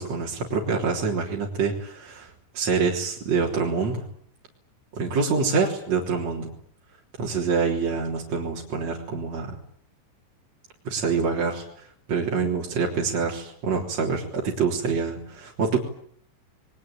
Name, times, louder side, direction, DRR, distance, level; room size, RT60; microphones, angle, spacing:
voice 1, 0.0-4.0 4.9-6.5 7.2-9.6 10.8-11.6 12.1-15.8, right 5 dB, 40° right, -2 dB, 4.2 m, -26 dB
27.5 x 22.5 x 8.8 m, 0.64 s
omnidirectional pair, 5.4 m